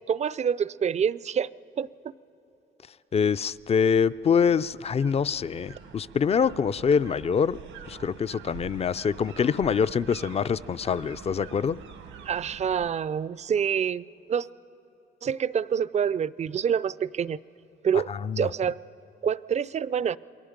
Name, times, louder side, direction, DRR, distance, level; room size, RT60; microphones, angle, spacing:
voice 1, 0.1-1.5 1.8-1.9 12.3-14.5 15.2-17.4 17.8-18.1 18.4-18.8 19.2-20.2, right 7 dB, 35° right, 19 dB, 0.4 m, -26 dB
voice 2, 3.1-7.6 7.9-11.8 18.1-18.5, left 6 dB, 30° left, 17 dB, 0.4 m, -25 dB
sound 1, 3.5-12.9, right 8 dB, 90° right, 1.4 m, -46 dB
28.0 x 22.0 x 5.2 m, 3.0 s
cardioid pair, 90°, 20 cm